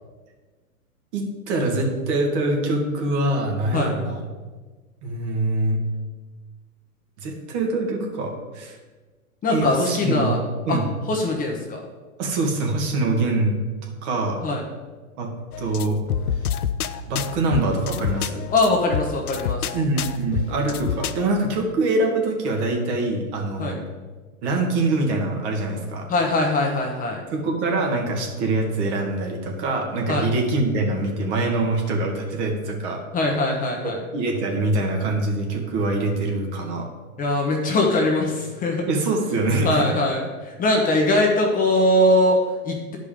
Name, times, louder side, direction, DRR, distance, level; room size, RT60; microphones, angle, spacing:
voice 1, 1.1-4.2 5.0-5.8 7.2-8.8 9.5-10.3 10.7-10.8 12.2-13.6 13.8-14.4 15.2-16.0 17.1-18.4 19.7-23.8 24.4-26.1 27.3-33.0 34.1-36.9 38.9-39.9, right 2 dB, 50° right, 2 dB, 2.0 m, -24 dB
voice 2, 9.4-10.4 10.7-10.8 11.1-11.8 14.4-14.6 18.5-19.7 23.6-23.8 26.1-27.2 30.1-30.3 33.1-34.0 37.2-38.8 39.6-43.0, left 1 dB, 20° left, 1 dB, 1.0 m, -21 dB
sound 1, 15.5-21.2, left 9 dB, 90° left, 0.6 m, -28 dB
10.0 x 5.2 x 5.0 m, 1.3 s
hypercardioid pair, 130°, 43 cm